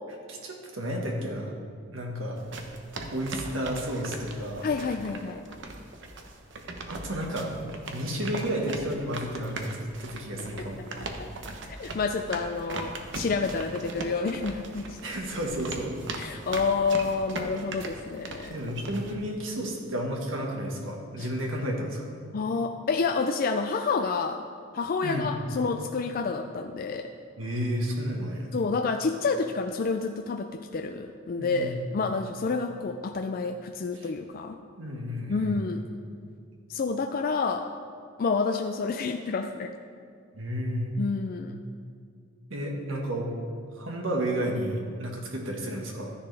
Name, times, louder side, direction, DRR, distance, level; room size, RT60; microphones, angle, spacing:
voice 1, 0.3-1.5 1.9-2.4 3.1-4.7 6.9-7.5 7.9-10.8 15.0-15.9 18.5-22.2 25.0-25.3 27.4-28.5 31.4-32.0 34.0-34.1 34.8-35.6 40.3-40.9 42.5-43.3 43.8-46.1, equal, 85° right, 0 dB, 1.6 m, -32 dB
sound 1, 2.4-19.1, right 2 dB, 65° right, 0.9 m, -40 dB
voice 2, 4.6-5.4 10.6-10.7 11.2-11.3 11.8-15.0 16.1-18.6 21.2-21.3 22.3-24.5 24.7-27.1 28.5-34.6 35.3-35.8 36.7-37.6 38.2-39.7 41.0-41.6, left 4 dB, 45° left, 5 dB, 0.4 m, -29 dB
12.5 x 10.0 x 3.4 m, 2.3 s
head